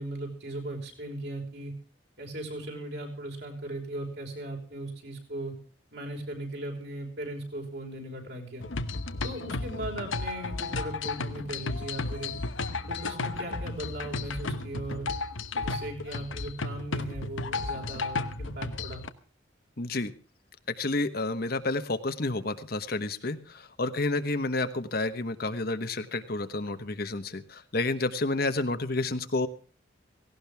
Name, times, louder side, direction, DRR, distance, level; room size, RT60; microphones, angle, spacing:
voice 1, 0.0-1.7 2.2-5.5 5.9-8.7 9.2-12.3 12.9-15.1 15.6-19.0, right 1 dB, 60° right, 2 dB, 5.0 m, -38 dB
sound 1, 8.6-19.1, left 3 dB, 80° left, 1.1 m, -33 dB
voice 2, 19.8-20.1 20.7-29.5, left 2 dB, 50° left, 10 dB, 1.1 m, -30 dB
17.5 x 17.0 x 3.5 m, 0.38 s
head